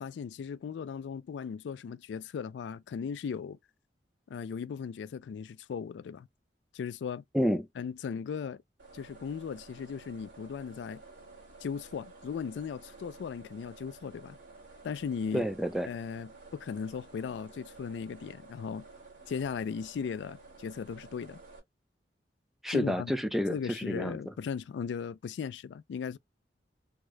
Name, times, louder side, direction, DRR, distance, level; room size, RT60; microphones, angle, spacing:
voice 1, 0.0-3.6 4.3-6.3 6.7-7.2 7.8-8.6 8.9-11.0 11.6-14.4 14.8-15.5 15.9-18.9 19.3-21.4 22.7-23.1 23.5-26.2, left 6 dB, 80° left, 0.3 m, -37 dB
sound 1, 8.8-21.6, right 3 dB, 85° right, 1.9 m, -52 dB
voice 2, 15.3-15.9 22.6-24.2, equal, ahead, 0.4 m, -29 dB
3.6 x 2.1 x 3.1 m
head